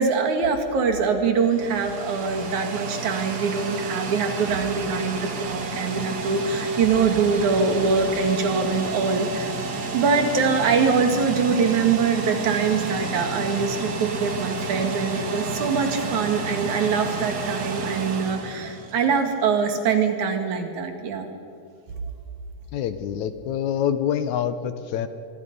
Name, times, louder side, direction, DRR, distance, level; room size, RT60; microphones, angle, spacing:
voice 1, 0.0-9.5 9.9-21.3, right 5 dB, 70° right, 5 dB, 3.3 m, -23 dB
sound 1, 1.2-19.4, right 4 dB, 45° right, 1.4 m, -31 dB
voice 2, 22.7-25.1, left 9 dB, 75° left, 11 dB, 2.2 m, -26 dB
24.5 x 24.0 x 5.4 m, 2.4 s
omnidirectional pair, 3.6 m